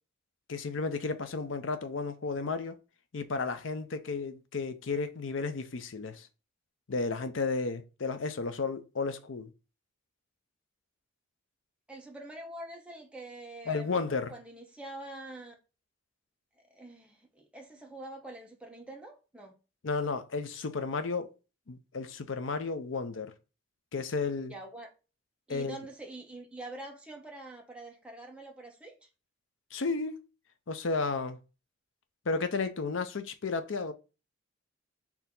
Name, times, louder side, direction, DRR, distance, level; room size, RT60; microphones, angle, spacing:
voice 1, 0.5-2.8 3.1-6.3 6.9-9.5 13.7-14.3 19.8-21.3 21.7-23.3 23.9-24.5 25.5-25.8 29.7-30.2 30.7-31.4 32.3-33.9, left 4 dB, 75° left, 0.6 m, -33 dB
voice 2, 11.9-15.5 16.7-19.5 24.5-24.9 25.5-29.1, right 1 dB, 5° right, 0.9 m, -45 dB
4.5 x 2.9 x 3.6 m
head